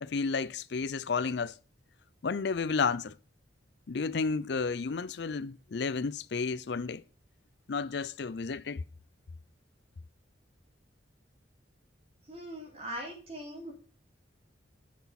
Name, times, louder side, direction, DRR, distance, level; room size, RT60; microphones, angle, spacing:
voice 1, 0.0-1.5 2.2-3.1 3.9-7.0 7.7-8.8, left 4 dB, 60° left, 0.5 m, -32 dB
voice 2, 12.2-13.7, equal, 30° right, 3.0 m, -41 dB
11.0 x 6.2 x 4.1 m
head